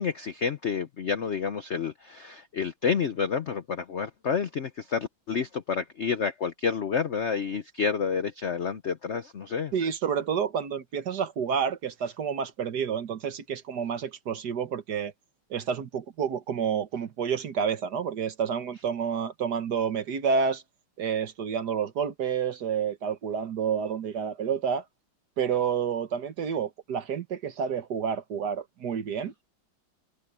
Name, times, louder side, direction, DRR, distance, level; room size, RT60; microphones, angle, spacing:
voice 1, 0.0-9.7, left 6 dB, 65° left, 0.7 m, -29 dB
voice 2, 9.7-15.1 15.5-20.6 21.0-24.8 25.4-29.4, right 7 dB, 55° right, 1.6 m, -29 dB
omnidirectional pair, 2.2 m